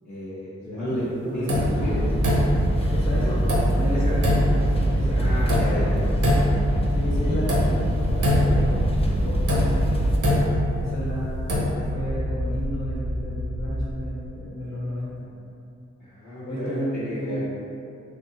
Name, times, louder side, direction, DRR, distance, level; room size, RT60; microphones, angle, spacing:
voice 1, 0.1-1.1 1.3-1.5 1.8-2.0 2.8-3.3 3.9-4.2 5.1-6.0 16.0-17.4, left 1 dB, 80° left, -12 dB, 0.9 m, -32 dB
voice 2, 0.6-1.7 2.9-5.3 5.6-6.0 6.9-9.9 10.8-15.3 16.5-16.9 17.2-17.4, equal, 60° left, -6 dB, 1.2 m, -33 dB
sound 1, 1.5-10.2, equal, 20° left, 0.5 m, -23 dB
sound 2, 1.5-1.8 2.2-2.8 3.5-3.8 4.2-4.6 5.5-5.8 6.2-6.7 7.5-7.8 8.2-8.7 9.5-11.0 11.4-11.7, left 1 dB, 85° right, 0.7 m, -23 dB
sound 3, 7.9-13.9, equal, 45° right, 0.5 m, -30 dB
3.4 x 2.8 x 2.8 m, 2.6 s
cardioid pair, 40°, 30 cm